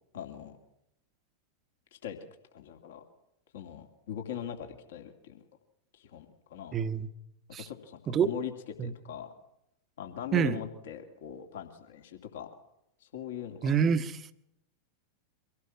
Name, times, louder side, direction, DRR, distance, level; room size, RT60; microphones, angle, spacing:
voice 1, 0.1-0.5 2.0-2.2 2.5-3.0 3.5-5.4 6.0-6.8 7.7-8.5 8.8-9.3 10.0-12.5 13.0-13.7, left 9 dB, 60° left, 5 dB, 2.6 m, -41 dB
voice 2, 6.7-7.1 7.5-7.7 8.1-8.3 8.8-8.9 10.3-10.6 13.6-14.3, right 7 dB, 25° right, 12 dB, 1.1 m, -27 dB
24.5 x 17.5 x 6.0 m, 0.79 s
figure-of-eight pair, 90°, 0 cm